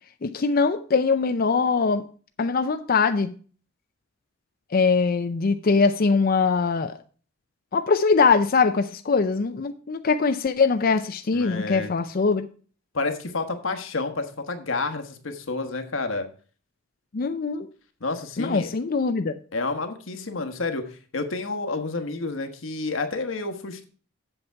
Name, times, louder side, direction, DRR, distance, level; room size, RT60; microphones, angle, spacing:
voice 1, 0.2-2.0 2.4-3.4 4.7-7.0 7.7-12.4 17.1-17.7 18.4-19.3, left 4 dB, 50° left, 0.5 m, -22 dB
voice 2, 11.3-11.9 12.9-16.3 18.0-18.7 19.5-23.8, left 3 dB, 80° left, 1.2 m, -30 dB
8.0 x 7.2 x 4.5 m
head